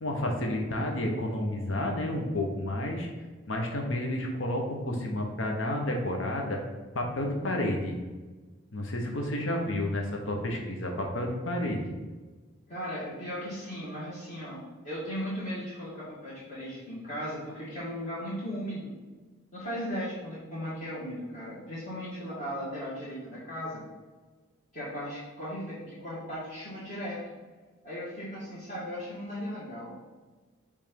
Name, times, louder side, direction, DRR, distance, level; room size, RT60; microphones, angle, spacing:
voice 1, 0.0-3.1 3.5-6.6 6.9-8.0 8.7-11.9, left 1 dB, 70° left, 1 dB, 1.0 m, -30 dB
voice 2, 12.7-19.0 19.5-23.8 24.7-27.2 27.8-30.0, equal, 40° left, -10 dB, 1.7 m, -37 dB
5.5 x 3.4 x 5.2 m, 1.3 s
head